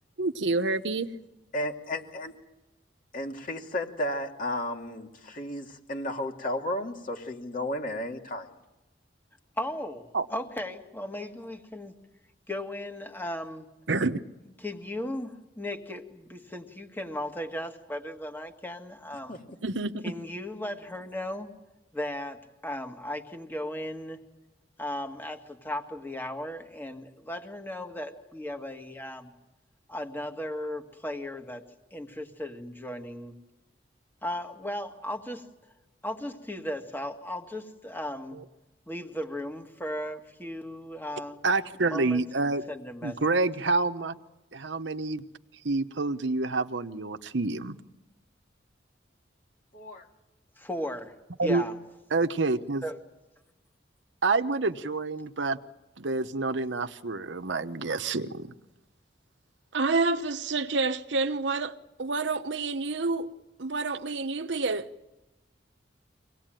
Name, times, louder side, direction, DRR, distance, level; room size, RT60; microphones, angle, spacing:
voice 1, 0.2-1.1 10.1-10.2 13.9-14.2 19.6-19.9 38.3-38.4 41.4-42.6 43.0-44.1 44.5-45.2 45.6-47.8 51.4-51.6 52.1-52.8 54.2-55.6 56.0-58.5 59.7-63.3 63.6-64.9, right 3 dB, 80° right, 1.0 m, -28 dB
voice 2, 1.5-2.3 3.1-8.5 19.3-19.4 49.7-50.1, left 1 dB, 45° left, 2.5 m, -33 dB
voice 3, 9.6-11.9 12.5-13.7 14.6-19.4 20.0-21.5 21.9-24.2 24.8-29.3 29.9-31.6 31.9-33.4 34.2-35.4 36.0-38.4 38.9-41.4 41.9-42.2 42.7-43.2 50.6-51.1 51.4-51.8 52.8-53.0, left 1 dB, 10° left, 1.8 m, -36 dB
24.5 x 18.5 x 9.1 m
head